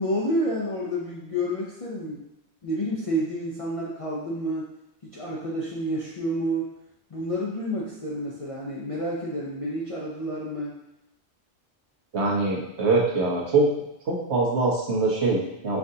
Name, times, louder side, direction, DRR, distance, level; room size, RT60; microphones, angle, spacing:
voice 1, 0.0-2.2 2.6-4.7 5.1-6.7 7.1-10.8, equal, 45° left, -5 dB, 0.4 m, -29 dB
voice 2, 12.1-13.7 14.1-15.8, right 3 dB, 70° right, -2 dB, 1.1 m, -23 dB
5.5 x 2.5 x 2.7 m, 0.85 s
omnidirectional pair, 1.2 m